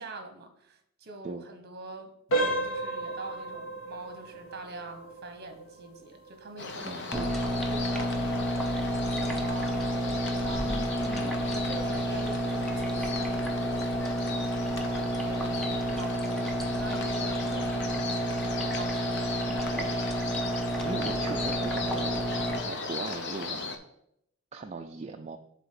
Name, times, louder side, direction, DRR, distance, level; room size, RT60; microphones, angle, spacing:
voice 1, 0.0-2.1 2.4-7.3 7.7-14.2 14.7-19.5, right 2 dB, 50° right, 6 dB, 1.1 m, -45 dB
sound 1, 2.3-13.0 13.3-13.6 14.1-14.2 14.7-14.9, right 2 dB, 90° left, 1.6 m, -37 dB
sound 2, 6.6-23.8, left 4 dB, 55° left, 0.8 m, -37 dB
voice 2, 6.9-7.3 10.7-11.3 19.5-20.0 20.8-22.3 22.6-23.7 24.5-25.4, right 3 dB, 30° right, 3 dB, 0.4 m, -39 dB
sound 3, 7.1-22.6, equal, ahead, 0.7 m, -30 dB
7.1 x 3.9 x 5.7 m, 0.76 s
head